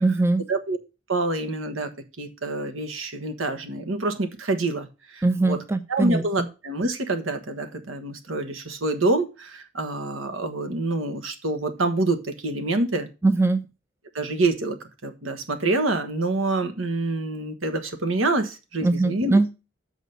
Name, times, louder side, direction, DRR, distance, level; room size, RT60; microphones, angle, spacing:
voice 1, 0.0-0.4 5.2-6.2 13.2-13.6 18.8-19.6, right 3 dB, 15° right, 10 dB, 0.5 m, -21 dB
voice 2, 1.1-1.9 2.2-5.6 5.9-13.1 14.1-14.8 15.0-19.4, right 2 dB, 80° right, 8 dB, 1.4 m, -26 dB
6.6 x 5.0 x 6.6 m, 0.28 s
head